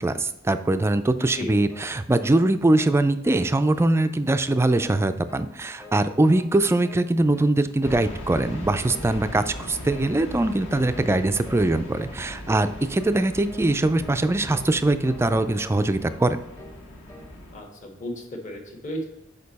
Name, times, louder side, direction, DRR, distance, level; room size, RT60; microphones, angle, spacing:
voice 1, 0.0-16.4, right 2 dB, 10° right, 10 dB, 0.3 m, -22 dB
sound 1, 1.2-2.5 2.7-3.0 3.2-3.9 4.2-5.0 5.3-6.0 6.3-6.5 6.8-7.6 7.8-8.1 8.3-8.6 8.9-9.6 9.9-10.1 10.4-10.6 10.9-11.2 11.4-11.7 11.9-12.2 12.5-12.7 13.0-13.2 13.5-13.7 14.0-14.2 14.5-14.8 15.0-15.8 16.0-16.3 16.5-16.8 17.1-17.3, left 2 dB, 15° left, 0.8 m, -46 dB
sound 2, 7.8-17.6, left 1 dB, 65° left, 1.6 m, -39 dB
voice 2, 17.5-19.1, equal, 40° left, 2 dB, 1.3 m, -34 dB
6.6 x 5.1 x 4.1 m, 0.89 s
head